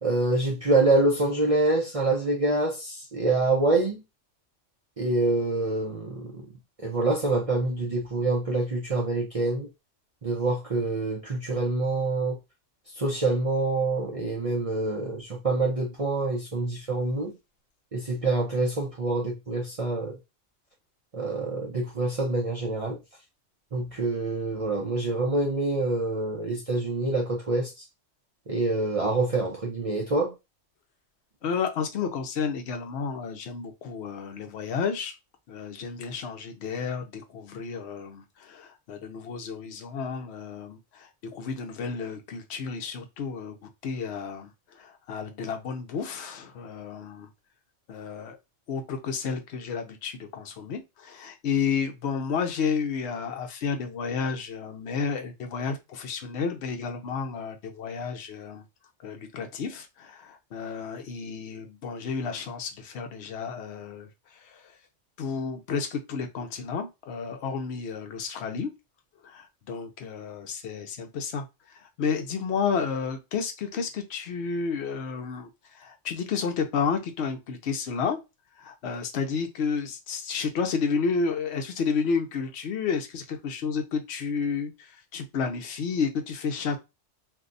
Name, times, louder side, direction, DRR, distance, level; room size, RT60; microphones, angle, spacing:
voice 1, 0.0-4.0 5.0-6.4 6.8-9.7 10.2-12.4 13.0-17.3 17.9-20.2 21.1-23.0 23.7-27.7 28.5-30.3, right 2 dB, 40° right, 0.5 m, -26 dB
voice 2, 31.4-35.1 35.5-43.6 43.8-47.3 47.9-48.4 48.7-58.6 59.0-64.1 64.4-64.6 65.2-68.7 69.2-71.5 72.0-78.2 78.6-86.8, left 5 dB, 65° left, 0.9 m, -31 dB
2.6 x 2.2 x 3.8 m
omnidirectional pair, 1.3 m